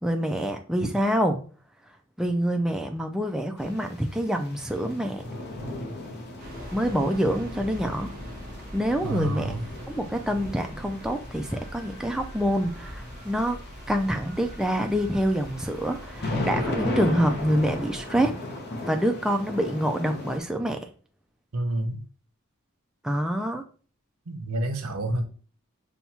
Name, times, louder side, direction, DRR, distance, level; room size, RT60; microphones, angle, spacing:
voice 1, 0.0-1.4 2.2-5.2 6.7-8.1 8.7-9.5 9.9-13.6 13.9-18.3 18.8-20.9 23.0-23.6, equal, 5° right, 4 dB, 0.3 m, -26 dB
sound 1, 3.6-20.4, left 1 dB, 50° left, 0.7 m, -37 dB
sound 2, 6.4-18.1, equal, 45° right, 0.8 m, -42 dB
voice 2, 9.0-9.6 21.5-22.0 24.3-25.2, right 1 dB, 90° right, 6 dB, 0.7 m, -29 dB
5.6 x 2.2 x 2.8 m, 0.39 s
head